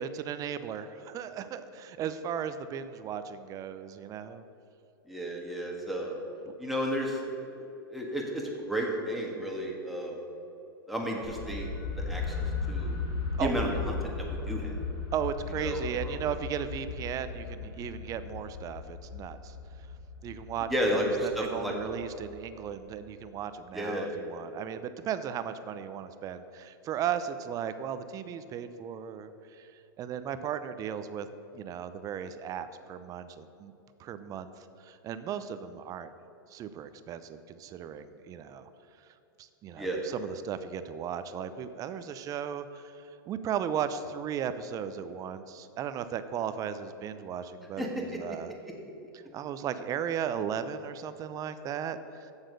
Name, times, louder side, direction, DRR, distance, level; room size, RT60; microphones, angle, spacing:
voice 1, 0.0-4.4 6.5-6.6 13.4-13.8 15.1-19.6 20.2-31.3 31.5-33.7 34.0-34.5 34.8-36.1 36.5-38.7 39.4-48.5 49.1-52.3, right 8 dB, 30° right, 12 dB, 0.5 m, -36 dB
voice 2, 5.1-6.2 6.6-7.5 7.9-10.1 10.9-11.7 12.1-13.0 13.4-14.7 15.6-16.2 20.7-21.1 21.3-21.7 23.7-24.1 39.8-40.0 47.8-47.9, equal, ahead, -2 dB, 1.6 m, -32 dB
sound 1, 11.2-23.1, left 4 dB, 70° left, 2.5 m, -37 dB
7.6 x 7.2 x 6.6 m, 2.9 s
hypercardioid pair, 130°, 12 cm